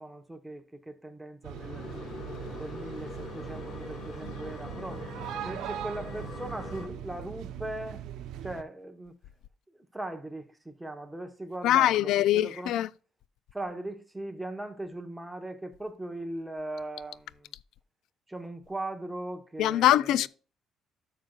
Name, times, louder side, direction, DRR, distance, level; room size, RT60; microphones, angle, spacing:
voice 1, 0.0-1.8 2.5-5.0 5.4-8.0 8.4-9.1 9.9-12.7 13.5-17.5 18.3-20.3, right 1 dB, 5° right, 1.1 m, -39 dB
sound 1, 1.4-8.6, right 10 dB, 80° right, 0.8 m, -40 dB
sound 2, 1.5-6.9, left 5 dB, 40° left, 1.3 m, -43 dB
voice 2, 11.6-12.9 19.6-20.3, left 13 dB, 75° left, 0.3 m, -23 dB
11.0 x 6.6 x 2.4 m
cardioid pair, 120°, 0 cm